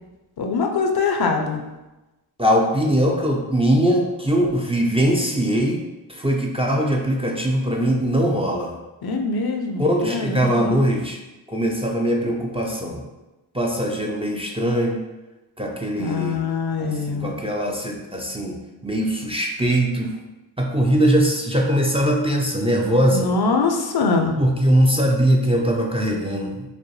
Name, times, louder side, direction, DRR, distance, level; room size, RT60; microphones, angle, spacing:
voice 1, 0.4-1.6 9.0-10.6 16.0-17.3 23.1-24.3, left 4 dB, 55° left, 4 dB, 0.5 m, -23 dB
voice 2, 2.4-5.8 6.1-8.7 9.8-11.2 11.5-13.0 13.5-15.0 15.6-16.4 16.8-18.6 18.8-20.1 20.6-23.3 24.4-26.6, equal, 15° right, -1 dB, 0.5 m, -21 dB
4.9 x 2.1 x 3.1 m, 1.1 s
cardioid pair, 65°, 46 cm